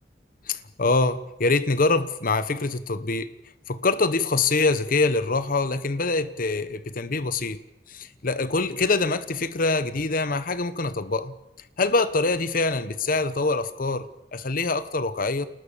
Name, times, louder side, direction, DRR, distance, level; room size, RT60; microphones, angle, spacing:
voice 1, 0.5-3.3 3.7-7.6 7.9-11.3 11.8-14.1 14.3-15.5, left 3 dB, 55° left, 1.0 m, -24 dB
28.5 x 19.5 x 7.2 m
head